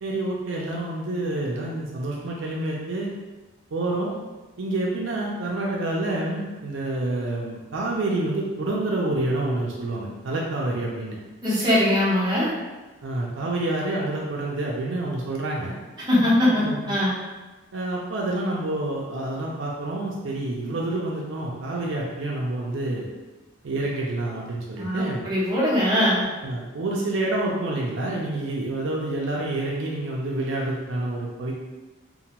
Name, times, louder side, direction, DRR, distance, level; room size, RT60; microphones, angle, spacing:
voice 1, 0.0-3.1 3.7-4.2 4.6-11.2 13.0-15.7 16.6-16.9 17.7-23.1 23.6-25.2 26.4-31.5, right 2 dB, 65° right, -3 dB, 0.4 m, -28 dB
voice 2, 11.4-12.5 16.0-17.1 24.8-26.3, left 1 dB, 20° right, -8 dB, 0.7 m, -21 dB
2.8 x 2.1 x 2.8 m, 1.2 s
head